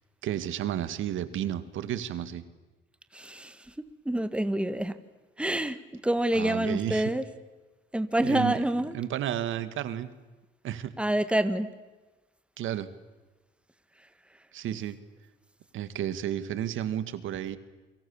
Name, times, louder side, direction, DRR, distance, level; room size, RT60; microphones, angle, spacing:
voice 1, 0.2-2.4 6.3-7.1 8.2-8.6 8.9-10.1 10.6-10.9 12.6-12.9 14.5-15.0 15.7-17.6, right 11 dB, 80° right, 13 dB, 1.9 m, -32 dB
voice 2, 3.1-3.7 4.1-5.0 5.4-5.8 6.0-7.2 7.9-9.0 11.0-11.7, right 1 dB, 5° right, 12 dB, 1.8 m, -27 dB
29.0 x 25.5 x 7.2 m, 1.2 s
cardioid pair, 90°, 20 cm